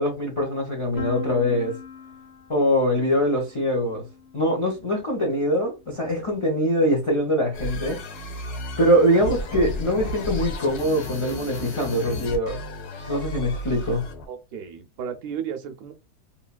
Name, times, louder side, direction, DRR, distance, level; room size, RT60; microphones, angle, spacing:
voice 1, 0.0-1.7 2.5-4.0 4.3-8.0 8.8-12.6 13.1-14.0, equal, 50° left, 0.3 m, -23 dB
Piano, 1.0-6.7, left 5 dB, 25° left, 1.2 m, -42 dB
sound 1, 7.5-14.3, equal, 70° left, 1.3 m, -33 dB
voice 2, 14.3-15.9, right 8 dB, 75° right, 1.0 m, -34 dB
3.0 x 2.8 x 2.2 m
omnidirectional pair, 1.8 m